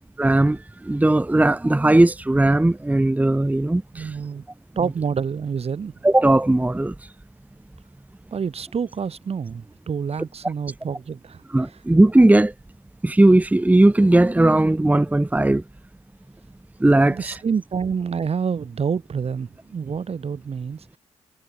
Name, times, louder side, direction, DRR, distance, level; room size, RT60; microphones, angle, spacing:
voice 1, 0.2-4.1 6.0-6.9 11.5-12.5 13.0-15.6 16.8-17.4, right 1 dB, 10° right, 1.1 m, -17 dB
voice 2, 3.9-4.4 4.7-5.9 8.3-11.8 17.1-20.8, right 6 dB, 55° right, 3.3 m, -28 dB
supercardioid pair, 60°, 12 cm